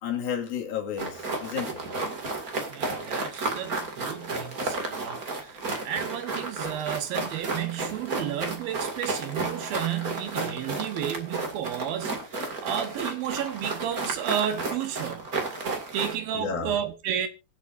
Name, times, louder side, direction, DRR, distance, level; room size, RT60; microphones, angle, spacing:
voice 1, 0.0-1.8 16.3-16.8, left 8 dB, 70° left, 3.7 m, -32 dB
sound 1, 1.0-16.1, right 3 dB, 30° right, 1.8 m, -32 dB
voice 2, 2.7-5.6 5.8-15.3 15.9-17.3, right 10 dB, 70° right, 2.8 m, -32 dB
23.5 x 8.1 x 2.6 m
omnidirectional pair, 4.6 m